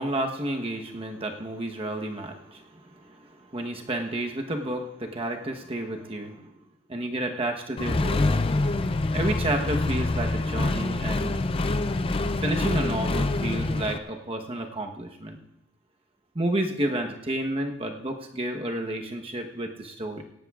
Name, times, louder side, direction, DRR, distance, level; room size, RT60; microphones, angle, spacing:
voice 1, 0.0-6.5 6.9-8.3 9.1-11.3 12.4-15.4 16.3-20.2, right 1 dB, 25° right, 3 dB, 1.1 m, -31 dB
Accelerating revving vroom, 7.8-14.0, left 2 dB, 25° left, 0.4 m, -26 dB
17.5 x 16.0 x 2.4 m, 0.82 s
head